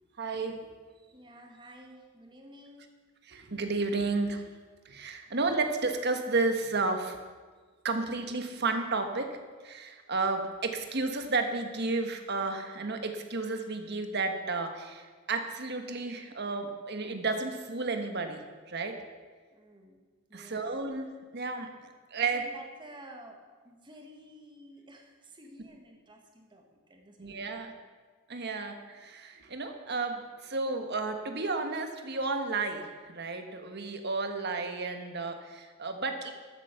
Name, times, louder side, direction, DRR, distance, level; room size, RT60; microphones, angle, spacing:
voice 1, 0.2-0.7 3.3-4.4 4.8-7.2 7.8-9.4 9.6-19.0 20.3-21.7 22.1-22.4 27.2-27.7 28.3-36.3, right 3 dB, 50° right, 6 dB, 1.4 m, -32 dB
voice 2, 1.0-2.9 19.5-20.0 20.3-20.6 22.1-27.7, right 1 dB, 20° right, 2 dB, 1.7 m, -52 dB
13.5 x 8.2 x 6.9 m, 1.5 s
head